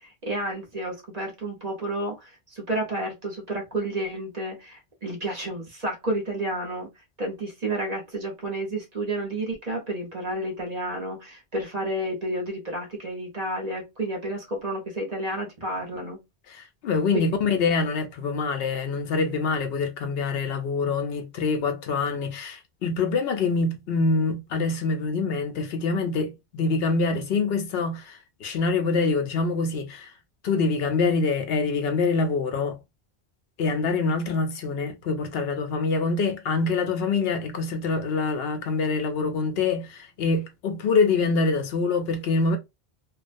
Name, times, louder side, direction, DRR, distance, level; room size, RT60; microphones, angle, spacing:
voice 1, 0.0-6.9 7.2-16.2 17.1-17.3, right 1 dB, 40° right, 0.9 m, -31 dB
voice 2, 16.5-30.1 30.4-32.8 33.6-42.6, left 4 dB, 70° left, 0.8 m, -25 dB
2.4 x 2.1 x 2.4 m
omnidirectional pair, 1.1 m